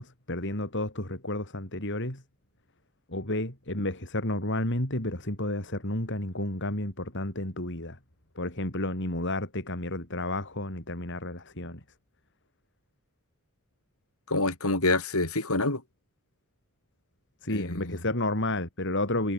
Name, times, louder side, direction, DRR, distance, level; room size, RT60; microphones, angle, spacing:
voice 1, 0.0-2.2 3.1-8.0 8.3-11.8 17.4-19.3, left 1 dB, 55° left, 6.6 m, -31 dB
voice 2, 14.3-15.8 17.5-18.0, left 2 dB, 80° left, 6.7 m, -27 dB
head